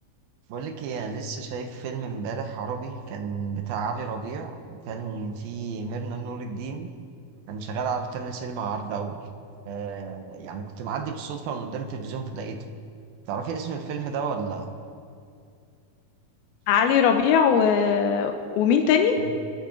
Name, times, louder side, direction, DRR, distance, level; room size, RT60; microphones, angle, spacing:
voice 1, 0.5-6.9 7.5-9.2 9.6-12.6 13.3-14.7 19.2-19.3, right 5 dB, 80° right, 5 dB, 3.0 m, -32 dB
voice 2, 16.7-19.2, left 7 dB, 85° left, 5 dB, 2.8 m, -20 dB
26.5 x 12.0 x 4.5 m, 2.3 s
omnidirectional pair, 4.3 m